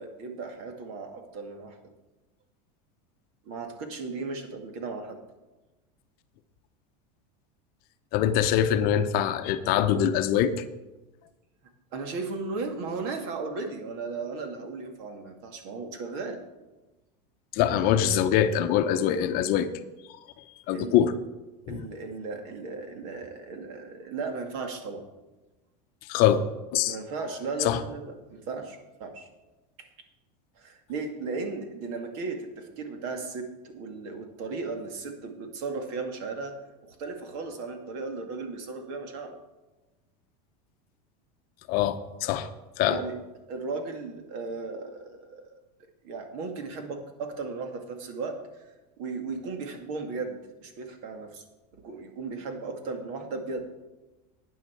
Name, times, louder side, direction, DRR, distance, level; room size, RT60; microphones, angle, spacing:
voice 1, 0.0-1.8 3.5-5.2 11.9-16.4 20.7-21.0 21.7-25.0 26.9-29.3 30.6-36.6 36.8-39.3 42.9-43.2 43.5-45.6 46.0-48.4 49.0-51.4 51.7-53.7, right 4 dB, 55° right, 5 dB, 2.2 m, -36 dB
voice 2, 8.1-10.5 17.5-19.7 20.7-21.1 21.7-21.8 26.1-26.4 26.7-27.0 27.6-27.8 41.7-42.5 42.8-43.0, left 10 dB, 45° left, 9 dB, 0.8 m, -23 dB
12.5 x 9.4 x 4.6 m, 1.1 s
supercardioid pair, 150°, 21 cm